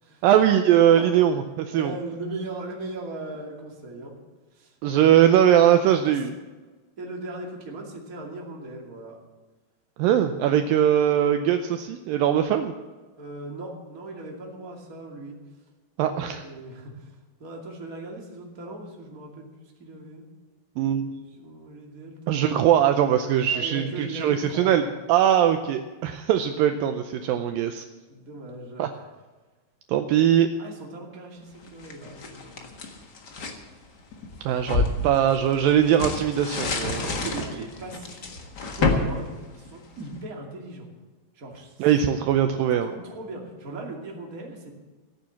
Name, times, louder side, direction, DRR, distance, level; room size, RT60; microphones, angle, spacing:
voice 1, 0.2-2.0 4.8-6.3 10.0-12.7 16.0-16.4 20.8-21.2 22.3-27.8 28.8-28.9 29.9-30.5 34.4-37.1 41.8-42.9, right 10 dB, 80° right, 7 dB, 2.2 m, -21 dB
voice 2, 1.7-4.2 4.5-4.8 5.7-6.2 7.0-9.2 13.2-15.4 16.0-19.5 19.8-20.2 20.8-21.1 21.4-22.7 23.5-24.9 28.1-29.1 30.6-32.7 34.5-34.8 35.8-36.0 36.8-40.9 41.3-41.9 42.8-44.7, right 2 dB, 25° right, 0 dB, 2.3 m, -39 dB
sound 1, 31.6-33.6 34.1-40.2, left 3 dB, 70° left, 1.0 m, -29 dB
16.0 x 8.9 x 7.2 m, 1.3 s
omnidirectional pair, 4.6 m